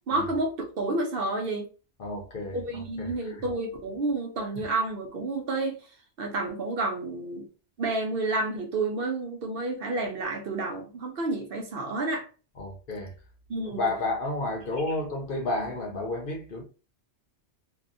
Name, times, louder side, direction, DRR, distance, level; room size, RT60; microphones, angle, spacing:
voice 1, 0.1-1.7 2.5-5.8 6.2-7.5 7.8-12.3 13.5-13.9, right 2 dB, 60° right, 0.8 m, -30 dB
voice 2, 2.0-3.5 4.4-4.5 12.6-13.1 13.6-16.6, left 2 dB, 55° left, 0.8 m, -32 dB
2.6 x 2.3 x 2.4 m
omnidirectional pair, 1.2 m